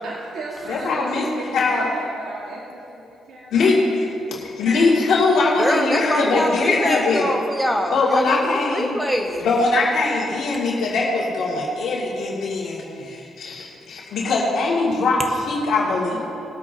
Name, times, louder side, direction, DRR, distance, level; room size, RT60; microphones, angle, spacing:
voice 1, 0.0-3.5 4.8-4.9 5.4-5.9 16.1-16.2, right 2 dB, 70° right, -6 dB, 2.0 m, -35 dB
voice 2, 0.7-1.2 1.5-1.9 3.5-7.3 7.9-9.0 9.4-15.2 15.5-16.2, left 3 dB, 70° left, -5 dB, 2.5 m, -21 dB
voice 3, 5.6-9.5, equal, 5° right, 2 dB, 1.3 m, -24 dB
21.0 x 8.4 x 2.9 m, 2.7 s
cardioid pair, 90°, 0 cm